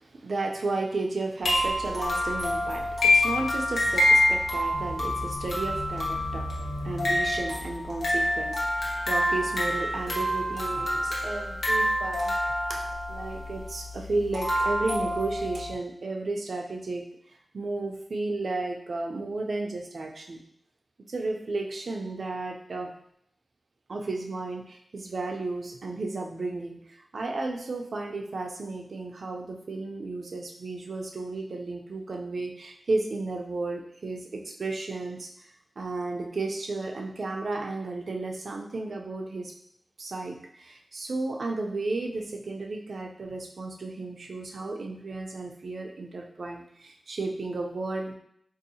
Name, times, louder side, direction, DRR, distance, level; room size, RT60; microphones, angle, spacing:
voice 1, 0.0-6.5 6.8-12.3 12.7-17.0 17.5-20.4 21.1-22.9 23.9-35.3 35.8-39.5 40.0-48.1, right 2 dB, 65° right, 2 dB, 0.5 m, -33 dB
sound 1, 1.4-15.7, left 1 dB, 70° left, 1.1 m, -27 dB
3.9 x 2.7 x 2.7 m, 0.70 s
cardioid pair, 65°, 0 cm